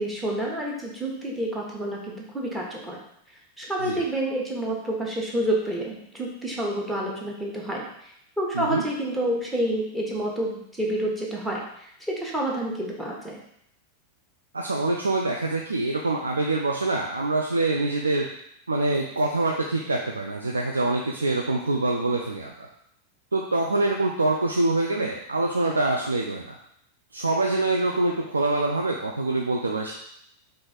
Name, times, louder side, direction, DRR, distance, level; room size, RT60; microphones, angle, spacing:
voice 1, 0.0-3.0 3.6-13.4, right 1 dB, 10° right, -2 dB, 1.1 m, -29 dB
voice 2, 14.5-18.3 18.7-22.7 23.3-26.6 27.1-29.9, right 2 dB, 75° right, 0 dB, 0.4 m, -25 dB
4.6 x 2.5 x 4.0 m, 0.72 s
figure-of-eight pair, 90°, 0 cm